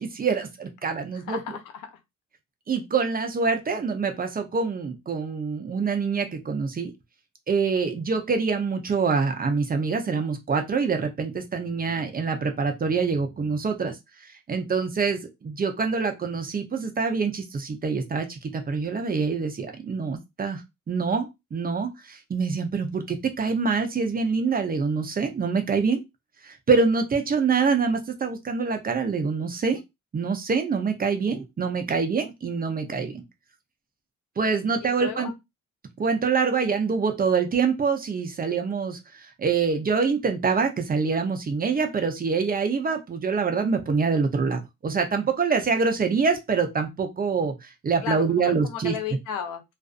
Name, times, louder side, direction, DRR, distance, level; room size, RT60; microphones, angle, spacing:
voice 1, 0.0-1.4 2.7-6.9 7.5-13.9 14.5-20.6 20.9-26.0 26.4-29.8 30.1-33.2 34.4-35.3 36.0-39.0 39.4-48.9, right 5 dB, 30° right, 0.6 m, -25 dB
voice 2, 1.1-2.0 34.8-35.3 48.0-49.6, left 7 dB, 90° left, 0.6 m, -34 dB
2.5 x 2.4 x 2.4 m
cardioid pair, 90°, 30 cm